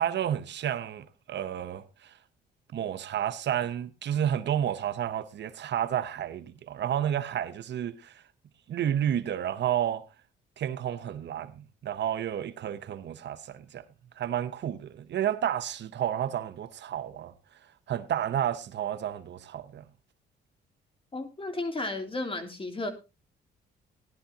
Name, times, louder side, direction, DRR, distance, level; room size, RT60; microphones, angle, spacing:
voice 1, 0.0-2.1 2.7-8.1 8.7-10.0 10.6-13.8 14.2-17.3 17.9-19.8, right 10 dB, 60° right, 0.8 m, -31 dB
voice 2, 21.1-22.9, left 2 dB, 25° left, 2.9 m, -33 dB
17.0 x 11.5 x 2.8 m
cardioid pair, 90°, 20 cm